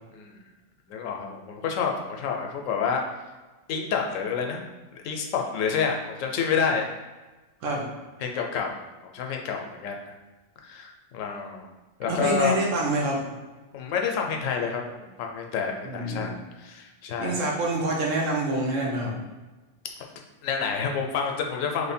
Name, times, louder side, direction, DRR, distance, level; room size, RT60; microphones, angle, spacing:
voice 1, 0.9-3.0 3.7-4.6 4.9-6.9 8.2-10.0 10.6-11.7 12.0-12.6 13.7-16.3 16.6-17.5 20.4-21.9, left 6 dB, 90° left, 2 dB, 1.0 m, -28 dB
voice 2, 12.0-13.2 15.8-16.4 17.2-19.2, right 2 dB, 85° right, -2 dB, 1.2 m, -26 dB
3.1 x 2.1 x 4.2 m, 1.2 s
omnidirectional pair, 1.3 m